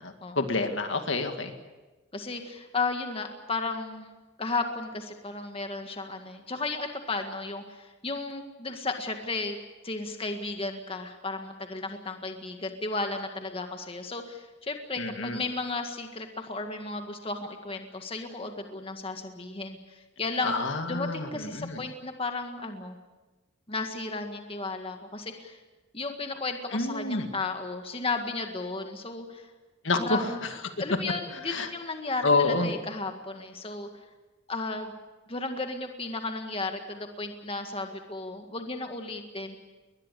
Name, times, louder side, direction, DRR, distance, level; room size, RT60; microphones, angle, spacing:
voice 1, 0.0-1.5 15.0-15.4 20.4-21.8 26.7-27.3 29.8-30.3 31.5-31.7 32.2-32.7, left 3 dB, 65° left, 6 dB, 2.1 m, -28 dB
voice 2, 2.1-4.1 4.4-9.6 9.8-20.6 20.9-23.0 23.7-25.6 25.9-29.5 30.0-30.4 30.8-33.9 34.5-34.9 35.3-39.6, left 3 dB, 30° left, 5 dB, 1.9 m, -34 dB
21.5 x 21.0 x 8.4 m, 1.2 s
head